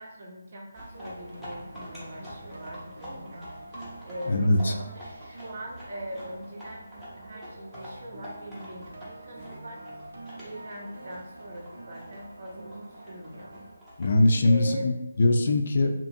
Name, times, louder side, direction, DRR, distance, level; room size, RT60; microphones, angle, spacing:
voice 1, 0.0-3.8 4.0-9.8 10.4-13.6 14.4-14.9, equal, 45° right, -1 dB, 0.7 m, -41 dB
sound 1, 0.7-14.2, equal, 5° right, 0.7 m, -47 dB
sound 2, 0.9-13.7, right 2 dB, 80° right, 0.7 m, -46 dB
voice 2, 4.3-4.7 14.0-15.9, left 2 dB, 50° left, 5 dB, 0.3 m, -22 dB
2.8 x 2.4 x 2.6 m, 0.92 s
figure-of-eight pair, 165°, 0 cm